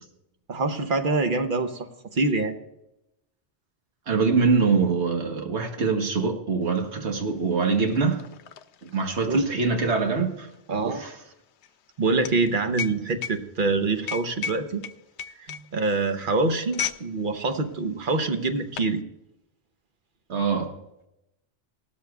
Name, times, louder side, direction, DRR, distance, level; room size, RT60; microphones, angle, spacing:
voice 1, 0.5-1.9 2.1-2.5 9.2-9.5 10.7-11.0 12.0-14.8 15.4-19.0, right 3 dB, 50° right, 8 dB, 1.0 m, -25 dB
voice 2, 4.1-8.2 8.8-10.5 10.8-11.2 20.3-20.7, right 4 dB, 75° right, 3 dB, 1.5 m, -24 dB
sound 1, 6.8-6.9 7.1-17.1 17.4-17.7 18.3-19.0, left 8 dB, 80° left, 0.9 m, -36 dB
18.5 x 12.5 x 2.3 m, 0.88 s
omnidirectional pair, 1.1 m